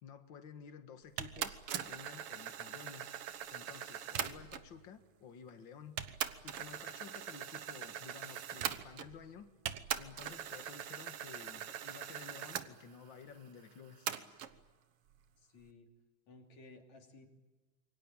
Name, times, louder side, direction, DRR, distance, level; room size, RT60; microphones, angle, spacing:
voice 1, 0.0-3.1 3.5-6.0 6.4-9.5 10.0-14.1, left 7 dB, 45° left, 9 dB, 2.0 m, -53 dB
sound 1, 1.2-4.7 5.5-5.6 6.0-9.3 9.7-12.7 14.1-14.5, right 10 dB, 60° right, 1.7 m, -41 dB
voice 2, 15.4-15.9 16.3-17.3, left 3 dB, 65° left, 4 dB, 4.2 m, -57 dB
27.5 x 23.5 x 8.9 m, 1.2 s
omnidirectional pair, 3.5 m